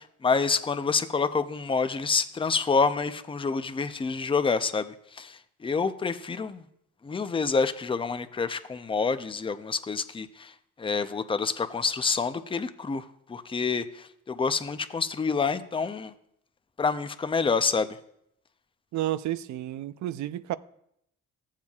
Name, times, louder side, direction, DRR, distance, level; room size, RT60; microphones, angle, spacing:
voice 1, 0.0-6.6 7.0-10.5 10.8-16.1 16.8-17.9, left 5 dB, 15° left, 0.5 m, -28 dB
voice 2, 18.9-20.6, right 13 dB, 70° right, 0.5 m, -31 dB
14.5 x 7.4 x 2.4 m
cardioid pair, 90°, 30 cm